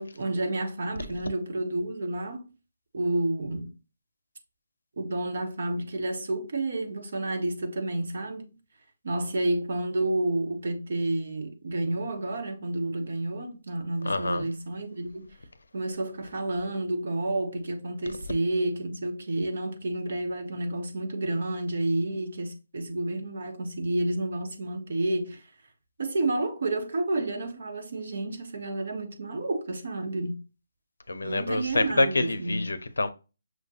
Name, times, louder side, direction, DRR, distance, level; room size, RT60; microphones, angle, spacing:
voice 1, 0.0-2.4 2.9-3.7 5.0-8.5 9.0-15.3 15.7-25.5 26.0-30.4 31.2-32.7, right 2 dB, 60° right, 1.3 m, -30 dB
voice 2, 14.0-14.4 31.1-33.1, left 2 dB, 85° left, 0.6 m, -27 dB
6.2 x 2.5 x 2.7 m
figure-of-eight pair, 155°, 0 cm